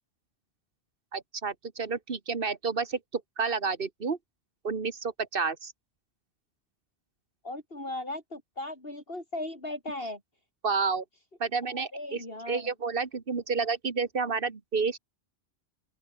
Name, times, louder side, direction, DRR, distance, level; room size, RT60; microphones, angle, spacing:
voice 1, 1.1-4.2 4.6-5.7 10.6-11.0 11.4-15.0, right 5 dB, 55° right, 1.7 m, -30 dB
voice 2, 7.4-10.2 11.7-12.7, left 1 dB, 60° left, 6.7 m, -37 dB
open air
omnidirectional pair, 1.1 m